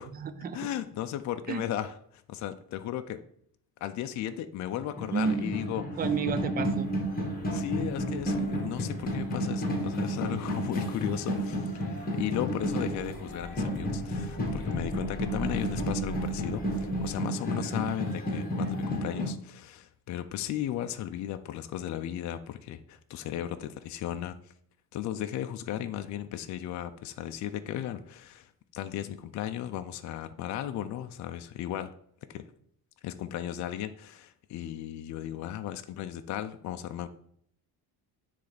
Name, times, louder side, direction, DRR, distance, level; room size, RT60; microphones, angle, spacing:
voice 1, 0.0-0.7 1.5-1.6 5.1-5.5 6.0-6.9, right 6 dB, 25° right, 11 dB, 0.4 m, -31 dB
voice 2, 0.5-3.2 3.8-5.9 7.5-24.4 24.9-31.9 32.3-32.4 33.0-37.1, left 11 dB, 50° left, 8 dB, 0.5 m, -35 dB
sound 1, 4.7-19.3, equal, 25° left, 1.4 m, -32 dB
sound 2, 6.6-17.1, left 1 dB, 5° left, 1.9 m, -46 dB
9.5 x 3.4 x 4.0 m, 0.64 s
cardioid pair, 150°, 39 cm